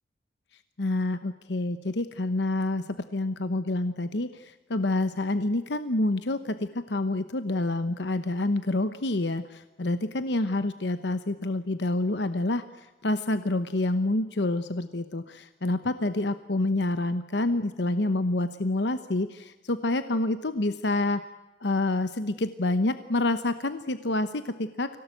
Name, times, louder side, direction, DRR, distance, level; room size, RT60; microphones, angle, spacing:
voice 1, 0.8-21.3 21.6-25.0, left 2 dB, 70° left, 11 dB, 1.0 m, -28 dB
25.0 x 17.5 x 9.2 m, 1.1 s
head